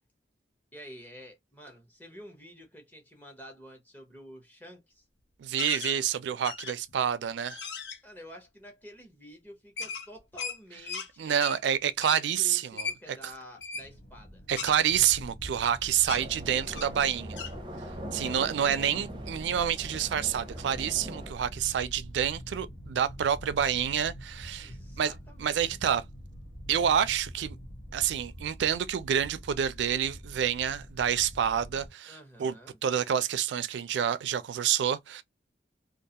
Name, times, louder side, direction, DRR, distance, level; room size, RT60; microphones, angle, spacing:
voice 1, 0.7-5.0 8.0-11.4 12.1-14.4 24.6-25.6 32.1-32.8, equal, 10° left, 0.7 m, -49 dB
voice 2, 5.4-7.6 11.2-12.9 14.5-17.4 18.1-25.1 25.4-26.0 26.7-27.6 27.9-32.1 32.4-32.5 32.8-35.2, right 9 dB, 85° right, 0.3 m, -28 dB
sound 1, 5.6-6.0 6.4-6.9 7.4-8.0 9.8-11.1 11.4-11.6 12.0-12.2 12.8-13.0 13.6-13.9 14.6-15.7 16.0-16.2 16.7-17.0 17.4-17.5, left 6 dB, 80° left, 0.6 m, -37 dB
sound 2, 13.7-31.9, equal, 55° left, 0.9 m, -45 dB
sound 3, 16.1-21.3, equal, 25° right, 0.5 m, -42 dB
2.4 x 2.2 x 2.7 m
head